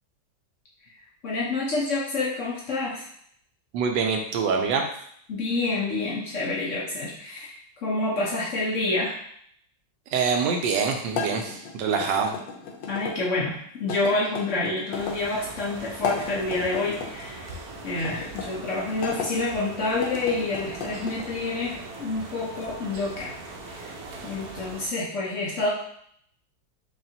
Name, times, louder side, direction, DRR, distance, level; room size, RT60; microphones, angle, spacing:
voice 1, 1.2-3.1 5.3-7.6 7.8-9.2 12.9-17.5 17.8-23.3 23.7-23.9 24.2-25.7, left 2 dB, 60° left, -4 dB, 0.8 m, -28 dB
voice 2, 3.7-4.8 10.1-12.3, right 5 dB, 80° right, 3 dB, 1.3 m, -25 dB
sound 1, 11.1-13.1 13.9-15.2 15.9-17.1 18.0-19.3 19.9-21.3, left 5 dB, 80° left, 1.4 m, -34 dB
sound 2, 14.9-24.9, right 3 dB, 65° right, 1.0 m, -40 dB
4.9 x 2.6 x 2.7 m, 0.66 s
omnidirectional pair, 2.0 m